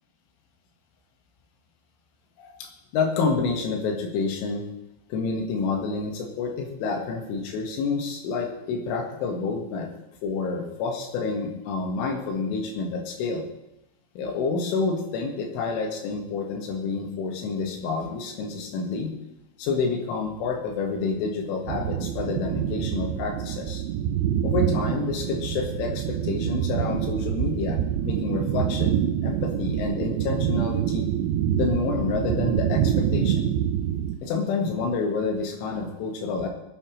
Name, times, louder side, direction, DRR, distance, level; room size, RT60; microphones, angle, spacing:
voice 1, 2.4-4.7 5.1-9.9 10.2-13.4 14.2-19.1 19.6-23.8 24.4-27.8 28.0-31.1 31.6-33.5 34.2-36.5, left 4 dB, 85° left, 3 dB, 4.1 m, -28 dB
sound 1, 21.7-34.2, right 10 dB, 80° right, 3.0 m, -26 dB
21.0 x 9.8 x 3.2 m, 0.86 s
omnidirectional pair, 5.4 m